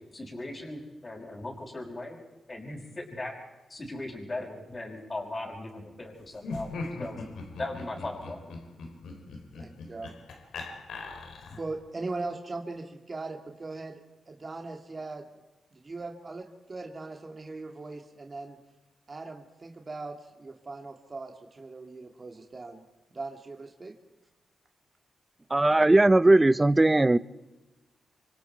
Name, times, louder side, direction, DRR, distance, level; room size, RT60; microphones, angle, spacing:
voice 1, 0.1-2.2 2.5-3.3 3.7-7.2 7.6-8.5, left 2 dB, 30° left, -4 dB, 5.9 m, -38 dB
Laughter, 6.4-11.8, left 3 dB, 90° left, 3.3 m, -40 dB
voice 2, 9.6-10.1 11.5-14.0 14.3-15.3 15.7-18.6 19.1-22.8 23.1-23.9, right 3 dB, 40° right, 3 dB, 2.3 m, -39 dB
voice 3, 25.5-27.2, right 2 dB, 20° right, 18 dB, 0.7 m, -19 dB
28.0 x 24.5 x 4.7 m, 1.1 s
cardioid pair, 70°, 0 cm